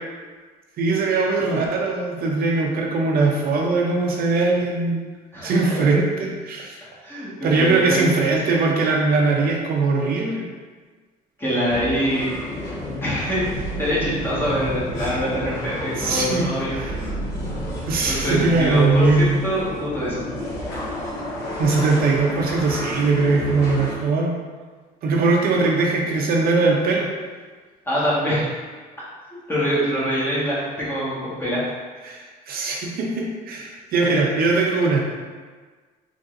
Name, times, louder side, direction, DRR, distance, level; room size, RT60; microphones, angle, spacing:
voice 1, 0.8-5.0 5.4-6.8 7.4-10.4 16.0-16.5 16.7-17.0 17.9-19.4 21.6-24.3 25.0-27.1 32.0-35.0, right 3 dB, 60° right, -1 dB, 0.6 m, -20 dB
voice 2, 5.3-5.6 7.0-8.5 11.4-12.3 13.0-16.8 18.1-20.3 27.9-28.5 29.5-31.6, equal, 15° left, -9 dB, 1.5 m, -24 dB
sound 1, 11.7-23.9, left 1 dB, 80° left, 1.1 m, -30 dB
3.9 x 3.2 x 2.6 m, 1.5 s
cardioid pair, 110°, 17 cm